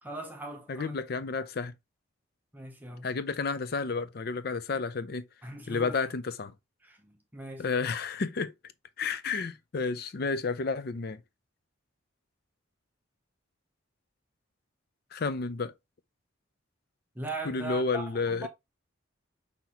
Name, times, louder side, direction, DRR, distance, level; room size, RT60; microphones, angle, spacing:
voice 1, 0.0-1.0 1.4-1.5 2.5-3.1 5.4-6.0 6.8-7.7 17.2-18.5, right 2 dB, 10° right, 0.6 m, -40 dB
voice 2, 0.7-1.7 3.0-5.2 5.7-6.5 7.6-8.5 9.0-11.2 15.1-15.7 17.4-18.5, left 4 dB, 50° left, 0.4 m, -31 dB
5.8 x 2.8 x 2.8 m
head